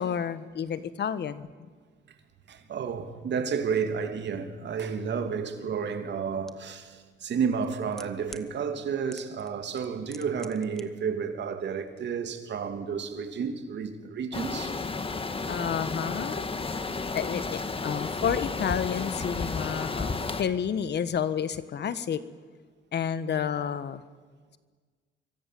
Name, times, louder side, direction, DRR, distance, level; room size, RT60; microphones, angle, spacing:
voice 1, 0.0-1.5 15.5-16.5 17.1-22.2 22.9-24.0, left 8 dB, 60° left, 1.4 m, -30 dB
voice 2, 2.5-14.8, right 6 dB, 60° right, 3.0 m, -31 dB
sound 1, 6.5-6.6 7.5-8.5 9.1-9.5 9.8-10.8 11.1-11.2, equal, ahead, 1.6 m, -45 dB
sound 2, 14.3-20.4, left 3 dB, 30° left, 1.9 m, -32 dB
26.5 x 23.5 x 7.8 m
cardioid pair, 90°, 20 cm